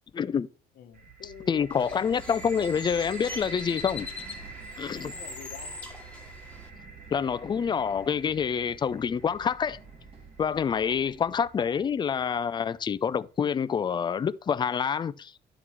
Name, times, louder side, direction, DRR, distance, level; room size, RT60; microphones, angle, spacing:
voice 1, 0.1-0.5 1.5-4.1 4.8-5.1 7.1-9.8 10.4-15.3, left 7 dB, 25° left, 0.4 m, -27 dB
voice 2, 0.7-1.9 5.0-5.8 10.7-11.1, left 9 dB, 70° left, 1.2 m, -48 dB
sound 1, 0.9-12.8, right 4 dB, 65° right, 4.1 m, -46 dB
Bird, 1.7-6.7, left 4 dB, 5° left, 2.1 m, -42 dB
Run, 1.7-11.5, right 4 dB, 35° right, 3.1 m, -54 dB
11.0 x 3.9 x 4.6 m
cardioid pair, 110°, 17 cm